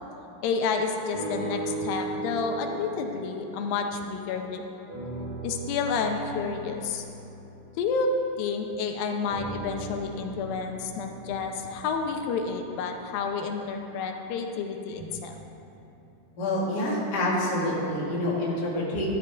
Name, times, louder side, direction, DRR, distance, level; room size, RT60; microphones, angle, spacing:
voice 1, 0.4-4.6 5.4-7.0 7.8-8.1 8.4-15.4, left 5 dB, 85° left, 4 dB, 2.5 m, -30 dB
sound 1, 1.1-4.5 4.9-8.6 9.3-13.5 14.1-14.2, right 2 dB, 60° right, 2.7 m, -38 dB
voice 2, 16.4-19.1, left 1 dB, 35° left, -5 dB, 1.9 m, -27 dB
13.0 x 11.0 x 3.4 m, 2.8 s
omnidirectional pair, 4.0 m